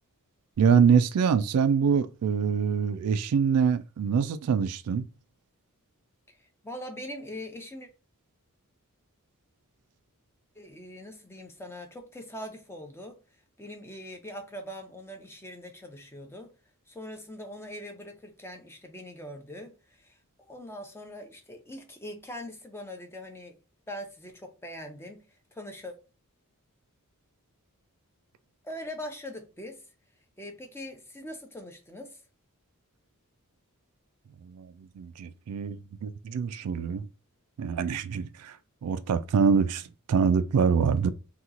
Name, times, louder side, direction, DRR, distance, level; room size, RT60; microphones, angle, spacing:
voice 1, 0.6-5.1 34.4-37.1 37.6-38.6 38.8-41.1, right 6 dB, 80° right, 0.3 m, -25 dB
voice 2, 6.3-7.9 10.5-13.2 13.6-16.5 16.9-23.5 23.9-25.2 25.5-26.0 28.6-29.9 30.4-32.2, left 1 dB, 10° left, 0.6 m, -42 dB
2.9 x 2.3 x 3.7 m
head